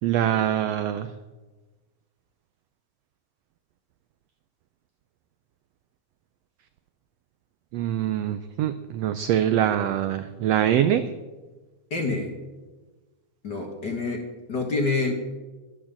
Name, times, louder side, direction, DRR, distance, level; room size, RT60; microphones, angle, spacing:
voice 1, 0.0-1.1 7.7-11.1, right 10 dB, 85° right, 10 dB, 1.4 m, -24 dB
voice 2, 11.9-12.3 13.4-15.1, left 3 dB, 45° left, 2 dB, 1.6 m, -27 dB
11.0 x 10.5 x 7.4 m, 1.2 s
omnidirectional pair, 3.6 m